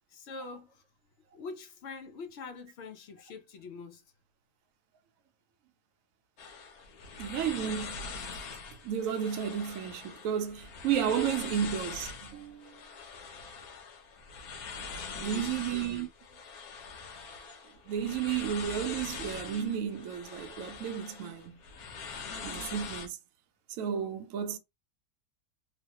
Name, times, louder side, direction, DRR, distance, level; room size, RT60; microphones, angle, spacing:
voice 1, 0.1-0.8 1.3-4.0 15.2-15.6, left 4 dB, 60° left, 0.7 m, -44 dB
sound 1, 6.4-23.1, left 5 dB, 80° left, 1.2 m, -43 dB
voice 2, 7.2-8.0 8.8-12.8 15.2-16.1 17.9-21.6 22.4-23.2 23.8-24.6, right 8 dB, 70° right, 0.9 m, -32 dB
3.0 x 2.0 x 2.8 m
omnidirectional pair, 1.6 m